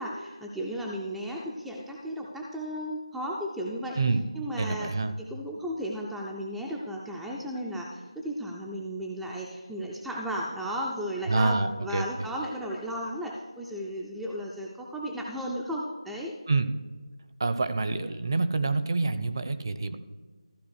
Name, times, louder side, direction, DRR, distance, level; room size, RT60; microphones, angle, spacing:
voice 1, 0.0-4.0 4.3-4.9 5.2-16.3, equal, ahead, -2 dB, 0.4 m, -34 dB
voice 2, 4.6-5.1 11.3-12.0 16.5-16.7 17.4-20.0, right 3 dB, 40° right, 11 dB, 0.7 m, -27 dB
14.0 x 4.9 x 6.3 m, 1.3 s
figure-of-eight pair, 170°, 3 cm